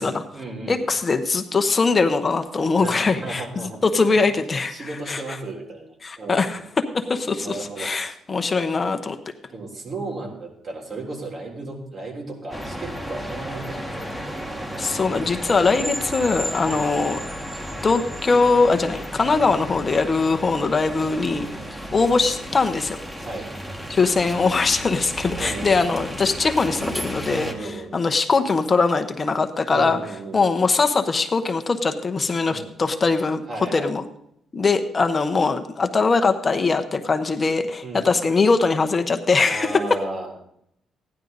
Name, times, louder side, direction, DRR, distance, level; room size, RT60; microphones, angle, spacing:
voice 1, 0.0-0.8 2.8-6.5 7.4-8.2 9.5-14.2 16.6-17.0 23.2-23.5 25.4-25.8 27.3-28.0 29.7-30.4 32.5-32.7 33.5-33.9 37.8-38.1 39.4-40.4, right 2 dB, 50° right, 0 dB, 3.6 m, -35 dB
voice 2, 0.7-3.4 3.8-5.2 6.0-9.2 14.8-17.2 17.8-21.5 21.9-23.0 23.9-30.0 30.3-33.4 33.7-34.0 34.5-40.0, left 4 dB, 30° left, 7 dB, 0.9 m, -21 dB
sound 1, 12.5-27.5, equal, 10° right, 1.5 m, -33 dB
15.0 x 10.5 x 4.0 m, 0.73 s
cardioid pair, 90°, 0 cm